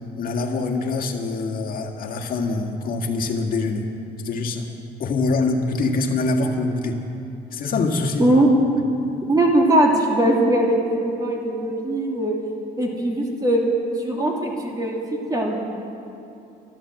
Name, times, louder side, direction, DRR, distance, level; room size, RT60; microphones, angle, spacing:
voice 1, 0.2-3.8 4.2-7.0 7.5-8.3, left 3 dB, 55° left, 2 dB, 1.8 m, -24 dB
voice 2, 9.3-12.3 12.8-13.6 14.0-15.6, right 1 dB, 20° right, -1 dB, 2.7 m, -20 dB
13.0 x 12.0 x 7.6 m, 2.7 s
cardioid pair, 110°, 17 cm